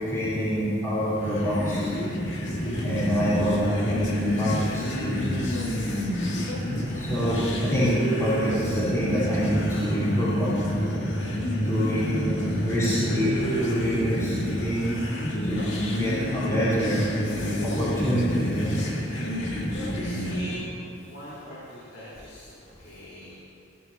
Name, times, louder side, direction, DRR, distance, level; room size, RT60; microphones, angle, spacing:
voice 1, 0.0-1.9 2.8-5.6 6.9-10.6 11.6-12.3 12.6-14.9 15.4-15.6 16.0-17.0 17.6-18.7, equal, 15° left, -12 dB, 4.4 m, -26 dB
sound 1, 1.2-20.7, equal, 65° left, 2.1 m, -28 dB
voice 2, 11.9-13.0 19.0-19.2 19.9-23.4, equal, 80° left, -9 dB, 4.2 m, -42 dB
20.5 x 16.0 x 2.9 m, 2.5 s
head